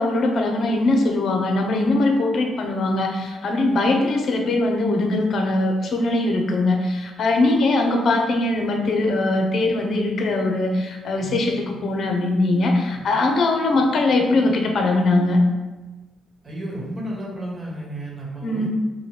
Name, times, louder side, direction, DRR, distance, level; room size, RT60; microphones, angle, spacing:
voice 1, 0.0-15.4 18.4-18.7, left 2 dB, 60° left, 2 dB, 0.7 m, -21 dB
voice 2, 11.2-11.5 12.9-13.1 16.4-18.7, right 1 dB, 25° right, -4 dB, 1.4 m, -32 dB
5.0 x 2.2 x 3.3 m, 1.2 s
cardioid pair, 90°, 0 cm